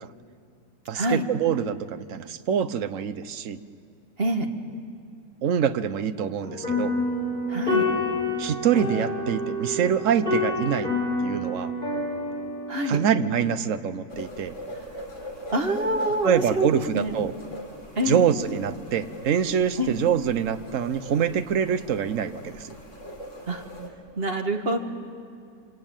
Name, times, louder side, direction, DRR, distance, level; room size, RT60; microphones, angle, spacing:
voice 1, 0.9-3.6 5.4-6.9 8.4-10.9 11.2-11.7 12.9-14.5 16.2-17.3 18.1-22.7, right 8 dB, 60° right, 11 dB, 1.2 m, -25 dB
sound 1, 6.4-13.0, left 2 dB, 30° left, 7.0 m, -28 dB
voice 2, 7.5-7.8 12.7-13.0 15.5-17.2 18.0-18.2 19.8-20.0 23.5-23.6 24.2-24.8, right 1 dB, 35° right, 4 dB, 2.0 m, -26 dB
sound 2, 14.1-23.9, equal, 50° left, 3.6 m, -41 dB
27.0 x 24.5 x 9.0 m, 2.4 s
omnidirectional pair, 1.7 m